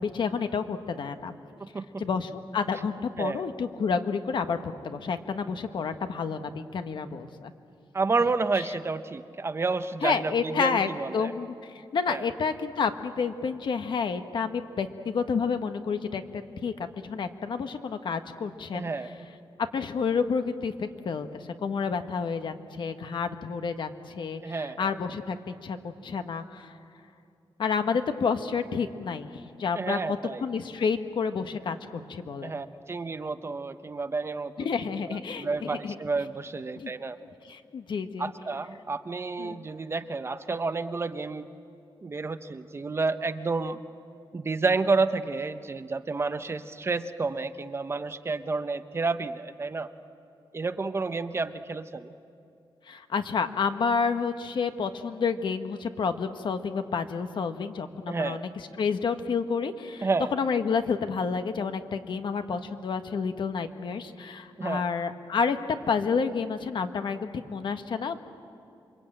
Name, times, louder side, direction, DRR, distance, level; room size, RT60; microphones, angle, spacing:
voice 1, 0.0-1.3 2.0-7.5 10.0-11.5 11.9-16.7 17.0-18.9 19.7-26.7 27.6-32.5 34.6-36.0 36.8-36.9 37.5-38.3 39.4-39.6 52.9-58.5 58.8-68.2, left 5 dB, 60° left, 8 dB, 1.3 m, -30 dB
voice 2, 1.6-2.0 3.2-3.4 7.9-11.4 12.1-12.2 18.7-19.1 24.4-24.9 29.8-30.4 32.4-34.7 35.1-37.2 38.2-41.5 42.0-43.8 44.3-49.9 50.5-52.1 58.1-58.4 60.0-60.3 64.6-64.8, right 3 dB, 30° right, 10 dB, 0.8 m, -30 dB
27.5 x 23.5 x 8.9 m, 2.6 s
wide cardioid pair, 145°, 9 cm